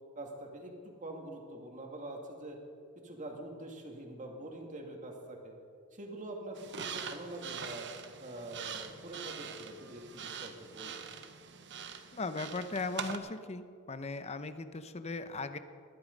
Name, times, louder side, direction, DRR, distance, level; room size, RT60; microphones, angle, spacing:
voice 1, 0.2-2.6 3.0-5.5 5.9-7.9 8.2-11.1, right 1 dB, 35° right, 2 dB, 2.2 m, -45 dB
sound 1, 6.6-13.2, right 7 dB, 55° right, 1.0 m, -43 dB
voice 2, 12.1-15.6, left 3 dB, 30° left, 11 dB, 0.8 m, -38 dB
19.5 x 12.5 x 5.3 m, 2.3 s
head